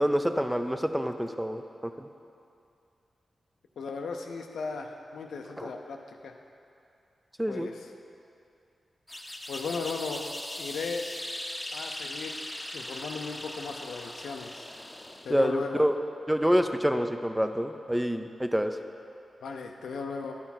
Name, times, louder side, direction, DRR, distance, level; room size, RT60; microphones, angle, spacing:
voice 1, 0.0-2.1 5.6-5.7 7.4-7.7 15.3-15.9 16.3-18.8, equal, 5° right, 7 dB, 0.6 m, -27 dB
voice 2, 3.8-6.3 7.5-7.8 9.5-10.3 10.6-11.1 11.7-12.4 12.7-14.6 15.2-15.9 19.4-20.3, left 4 dB, 85° left, 3 dB, 0.5 m, -36 dB
sound 1, 9.1-15.4, left 1 dB, 25° left, 0.8 m, -39 dB
10.5 x 6.0 x 4.2 m, 2.6 s
supercardioid pair, 40°, 0 cm